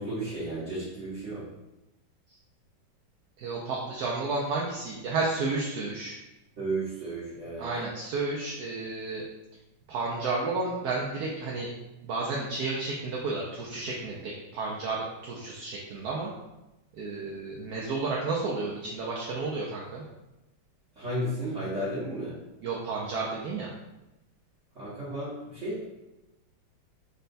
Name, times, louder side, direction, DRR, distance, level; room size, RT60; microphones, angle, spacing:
voice 1, 0.0-1.5 6.6-7.7 21.0-22.4 24.7-25.8, right 1 dB, 45° right, -10 dB, 1.2 m, -33 dB
voice 2, 3.4-6.2 7.6-9.2 9.9-11.7 12.0-16.3 16.9-20.0 22.6-23.7, right 3 dB, 75° right, -3 dB, 0.9 m, -32 dB
4.3 x 2.2 x 3.9 m, 0.98 s
omnidirectional pair, 2.1 m